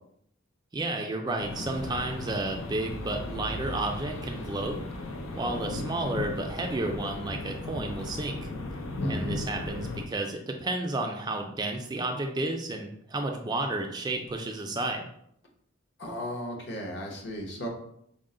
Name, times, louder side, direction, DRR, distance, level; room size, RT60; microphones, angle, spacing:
voice 1, 0.7-4.8 5.4-8.5 9.1-15.0, right 2 dB, 20° right, 3 dB, 0.3 m, -32 dB
sound 1, 1.4-10.1, left 2 dB, 90° left, 0.5 m, -36 dB
voice 2, 9.0-9.4 16.0-17.7, equal, 55° left, 0 dB, 0.9 m, -35 dB
5.3 x 2.1 x 3.7 m, 0.72 s
head